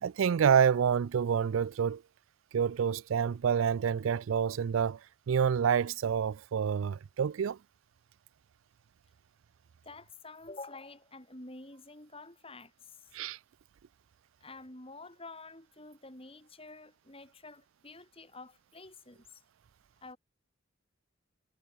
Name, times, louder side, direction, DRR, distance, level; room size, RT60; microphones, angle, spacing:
voice 1, 0.0-2.0 2.5-5.0 5.3-7.6 13.1-13.4, right 7 dB, 80° right, 0.4 m, -28 dB
voice 2, 9.8-13.2 14.4-19.4 20.0-20.2, left 3 dB, 30° left, 7.0 m, -49 dB
head